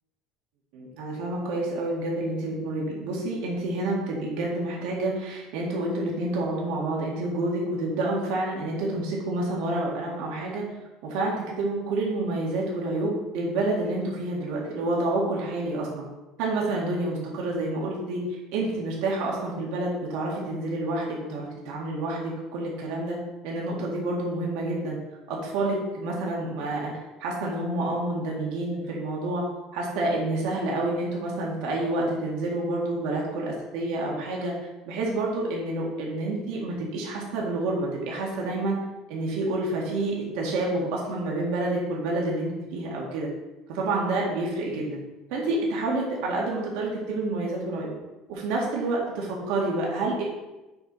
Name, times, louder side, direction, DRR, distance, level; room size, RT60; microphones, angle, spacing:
voice 1, 0.7-10.7 11.0-16.0 16.4-23.2 23.4-25.0 25.3-26.9 27.2-29.5 29.7-34.5 34.9-38.8 39.1-43.3 43.7-45.0 45.3-47.9 48.3-50.2, right 2 dB, 80° right, -3 dB, 1.9 m, -28 dB
7.0 x 4.2 x 5.8 m, 1.1 s
cardioid pair, 165°, 0 cm